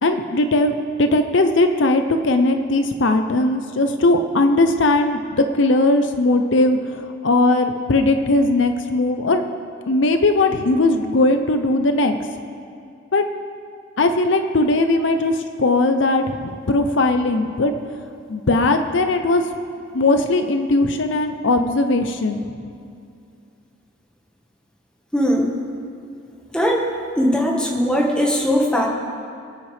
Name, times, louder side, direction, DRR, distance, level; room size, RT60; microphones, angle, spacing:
voice 1, 0.0-9.4 9.9-12.2 13.1-13.2 14.0-17.7 18.3-19.4 19.9-22.4, left 2 dB, 60° left, 7 dB, 0.6 m, -19 dB
voice 2, 25.1-25.5 26.5-26.9 27.1-28.9, equal, 5° left, -2 dB, 1.4 m, -19 dB
26.5 x 8.9 x 3.4 m, 2.4 s
head